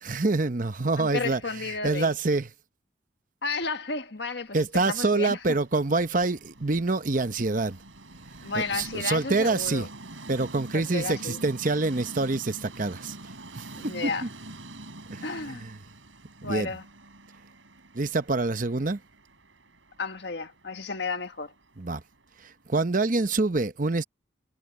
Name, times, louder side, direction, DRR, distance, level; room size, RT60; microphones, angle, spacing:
voice 1, 0.0-2.5 4.5-7.8 8.5-9.9 10.3-13.2 13.5-14.3 15.1-15.8 16.4-16.7 17.9-19.0 21.8-22.0 22.4-24.0, right 3 dB, 45° right, 0.9 m, -26 dB
voice 2, 1.0-2.1 3.4-5.4 8.4-9.9 10.7-11.4 13.8-14.3 15.2-15.6 16.4-16.8 20.0-21.5, left 4 dB, 60° left, 1.6 m, -32 dB
Train, 4.6-22.7, right 2 dB, 85° right, 6.6 m, -46 dB
head